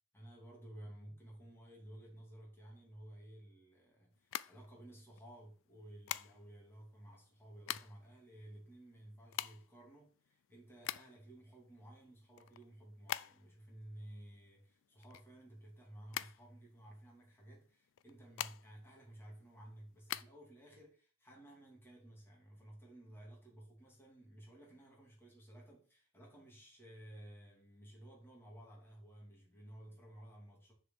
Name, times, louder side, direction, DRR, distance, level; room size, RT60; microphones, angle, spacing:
voice 1, 0.1-30.7, right 1 dB, 10° left, 2.6 m, -55 dB
sound 1, 4.2-5.2 6.1-6.7 7.3-8.1 8.4-8.5 8.7-11.3 11.7-13.6 13.9-15.7 16.1-17.1 17.9-18.9 19.3-20.2, left 13 dB, 60° left, 0.4 m, -43 dB
6.6 x 4.8 x 5.8 m
head